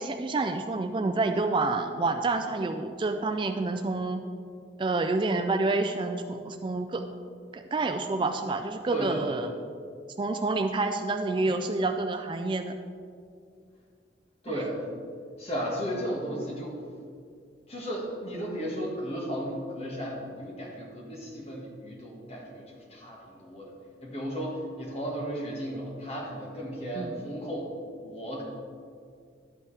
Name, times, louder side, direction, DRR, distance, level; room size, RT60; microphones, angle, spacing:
voice 1, 0.0-4.2 4.8-7.1 7.5-9.5 10.2-12.8 26.9-27.1, right 3 dB, 25° right, 7 dB, 0.3 m, -28 dB
voice 2, 8.9-9.5 14.4-14.9 15.4-16.8 17.7-27.7 28.0-28.4, equal, 35° left, -2 dB, 1.7 m, -35 dB
12.0 x 8.4 x 3.4 m, 2.3 s
head